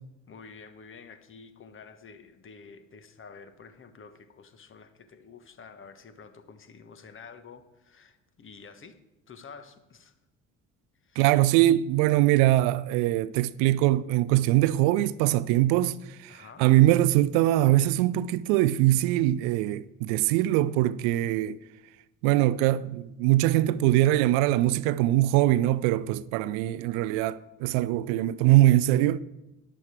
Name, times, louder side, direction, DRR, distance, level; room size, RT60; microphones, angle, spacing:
voice 1, 0.3-9.0 9.3-10.1 11.0-11.2 16.3-16.6, left 5 dB, 30° left, 1.5 m, -49 dB
voice 2, 11.2-21.6 22.2-29.2, right 15 dB, 55° right, 0.6 m, -22 dB
13.0 x 11.0 x 4.6 m
figure-of-eight pair, 55°, 40 cm